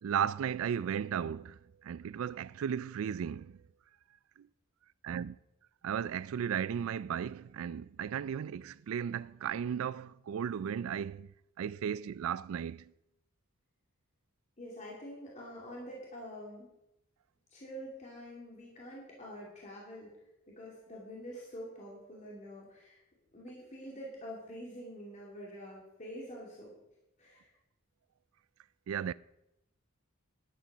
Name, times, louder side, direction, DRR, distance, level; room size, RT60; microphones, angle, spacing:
voice 1, 0.0-3.6 4.4-4.5 5.0-5.4 5.8-11.3 11.6-12.9 28.9-29.1, right 8 dB, 75° right, 0.3 m, -35 dB
voice 2, 14.6-16.7 17.5-20.1 20.5-23.0 23.3-26.7 27.2-27.5, equal, 35° left, 2.6 m, -46 dB
11.0 x 8.4 x 6.1 m
head